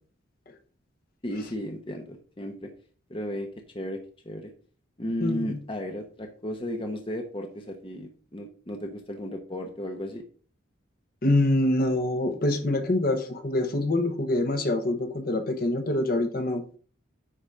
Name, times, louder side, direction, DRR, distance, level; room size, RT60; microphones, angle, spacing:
voice 1, 1.2-2.7 3.1-3.5 3.7-4.0 4.2-4.5 5.0-10.2, equal, 25° left, 3 dB, 0.9 m, -34 dB
voice 2, 5.2-5.6 11.2-16.6, left 1 dB, 50° left, 7 dB, 1.1 m, -25 dB
10.0 x 3.9 x 4.9 m, 0.41 s
head